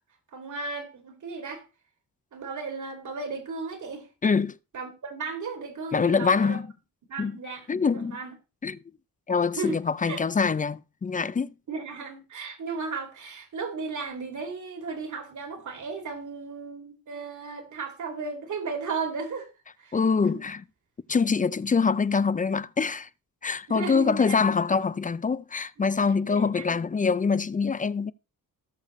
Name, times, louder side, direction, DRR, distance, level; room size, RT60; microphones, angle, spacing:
voice 1, 0.3-1.6 2.3-4.1 4.7-6.6 7.1-7.7 8.0-8.3 9.5-9.8 10.0-10.2 11.7-19.5 19.8-20.4 23.7-24.5 26.2-26.8, right 4 dB, 55° right, 2.7 m, -35 dB
voice 2, 4.2-4.6 5.9-6.7 7.2-7.4 7.7-8.2 8.6-8.8 9.3-11.5 19.9-20.6 21.1-23.1 23.4-28.1, left 5 dB, 25° left, 0.4 m, -24 dB
18.5 x 6.5 x 3.1 m
wide cardioid pair, 125°, 35 cm